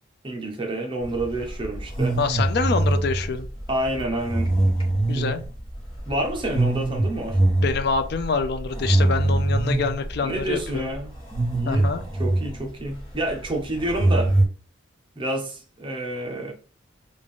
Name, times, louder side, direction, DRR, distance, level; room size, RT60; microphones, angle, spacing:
voice 1, 0.2-2.2 3.7-4.5 5.1-5.3 6.1-7.4 10.2-11.1 11.5-11.9 12.2-14.4 15.2-16.5, right 1 dB, 25° right, 0.8 m, -28 dB
sound 1, 1.0-14.5, right 1 dB, 25° left, 1.2 m, -24 dB
voice 2, 2.2-3.5 5.1-5.4 7.6-10.9 11.7-12.0, left 4 dB, 55° left, 0.4 m, -26 dB
3.6 x 2.5 x 3.6 m
head